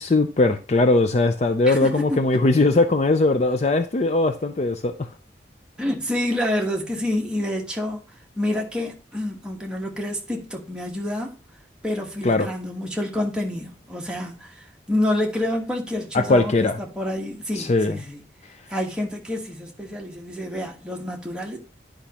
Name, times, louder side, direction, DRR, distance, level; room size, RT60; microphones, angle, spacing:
voice 1, 0.0-5.1 12.2-12.5 16.1-16.8 17.6-18.0, left 2 dB, 40° left, 0.4 m, -20 dB
voice 2, 1.6-2.2 5.8-8.0 8.3-11.3 11.8-18.2 18.7-21.6, left 1 dB, 5° right, 1.2 m, -28 dB
10.0 x 5.1 x 2.9 m
head